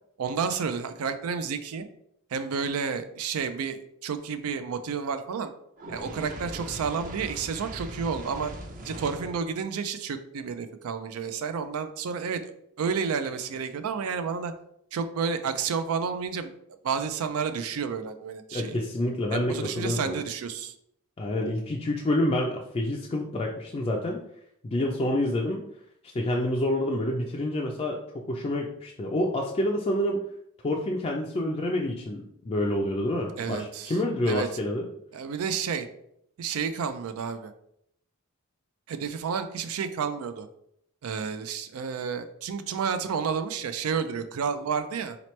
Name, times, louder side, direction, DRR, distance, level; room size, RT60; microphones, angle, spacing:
voice 1, 0.2-1.9 2.3-5.5 5.9-8.5 8.8-14.5 14.9-16.5 16.8-18.8 19.3-20.7 33.4-34.0 34.3-34.5 35.1-35.9 36.4-37.5 38.9-40.5 41.0-45.2, right 6 dB, 85° right, 10 dB, 0.4 m, -31 dB
Fire, 5.8-9.4, right 1 dB, 40° right, 0.5 m, -40 dB
voice 2, 18.5-20.2 21.2-24.2 24.6-25.7 26.0-28.0 28.3-30.2 30.6-34.9, left 1 dB, 30° left, -1 dB, 0.4 m, -28 dB
4.0 x 2.9 x 3.1 m, 0.73 s
head